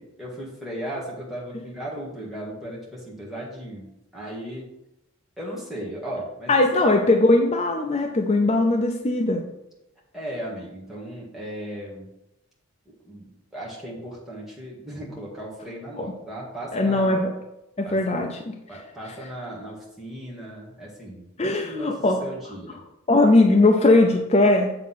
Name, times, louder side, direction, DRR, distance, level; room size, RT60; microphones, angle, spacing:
voice 1, 0.2-4.7 5.4-6.6 10.1-12.1 13.0-17.2 17.8-18.1 18.7-22.8, right 1 dB, ahead, -6 dB, 1.7 m, -36 dB
voice 2, 6.5-9.5 16.0-16.1 16.7-17.3 17.8-18.5 19.1-19.2 21.4-22.3 23.1-24.7, left 2 dB, 30° left, 2 dB, 0.5 m, -19 dB
7.8 x 3.6 x 5.7 m, 0.88 s
head